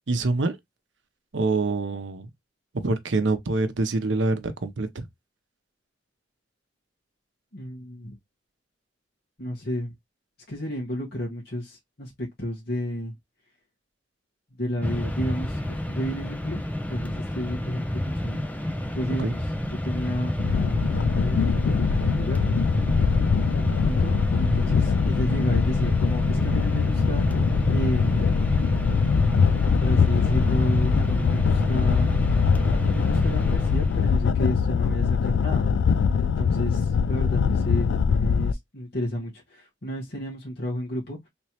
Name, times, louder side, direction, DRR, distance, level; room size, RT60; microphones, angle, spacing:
voice 1, 0.1-0.6 1.3-2.3 2.7-5.1 19.1-19.4, right 3 dB, 80° right, 0.7 m, -25 dB
voice 2, 7.5-8.2 9.4-9.9 10.5-12.1 12.4-13.1 14.6-16.6 16.9-18.4 18.9-19.4 19.7-22.4 22.8-27.2 27.7-28.4 29.8-32.1 32.7-35.7 36.2-41.2, equal, 60° left, 1.5 m, -32 dB
Mechanisms, 14.8-34.3, left 1 dB, 10° left, 0.6 m, -28 dB
sound 1, 20.4-38.5, left 6 dB, 80° left, 0.3 m, -23 dB
3.3 x 3.1 x 2.8 m
head